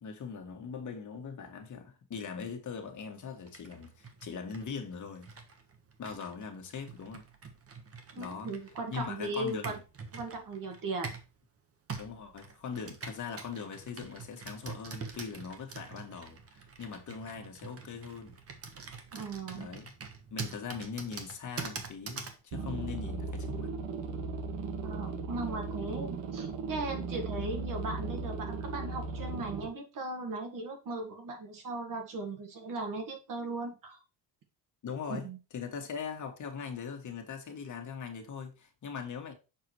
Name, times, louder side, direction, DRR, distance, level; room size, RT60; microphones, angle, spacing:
voice 1, 0.0-5.3 6.0-7.2 8.2-8.5 8.9-9.8 12.0-18.4 19.6-19.9 20.3-23.8 34.8-35.3 35.5-39.3, left 6 dB, 45° left, 1.8 m, -41 dB
Computer keyboard, 3.5-11.3 11.9-22.4, right 5 dB, 35° right, 1.4 m, -45 dB
voice 2, 8.1-9.8 10.1-11.2 19.1-19.7 24.8-34.0 35.2-35.4, right 2 dB, 50° right, 2.0 m, -38 dB
sound 1, 22.5-29.7, right 4 dB, 85° right, 1.8 m, -37 dB
6.9 x 4.9 x 4.5 m
cardioid pair, 140°, 42 cm